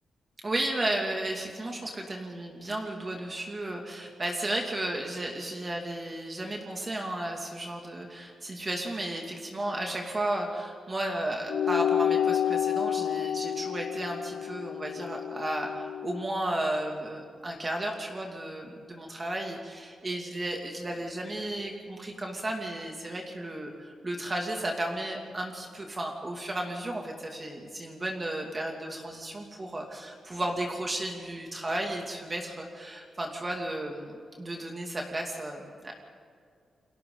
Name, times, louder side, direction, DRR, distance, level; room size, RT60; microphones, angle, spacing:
voice 1, 0.4-35.9, right 1 dB, 25° right, 1 dB, 2.5 m, -34 dB
sound 1, 11.5-16.3, left 9 dB, 80° left, 0.8 m, -29 dB
29.5 x 23.0 x 4.0 m, 2.3 s
cardioid pair, 110°, 0 cm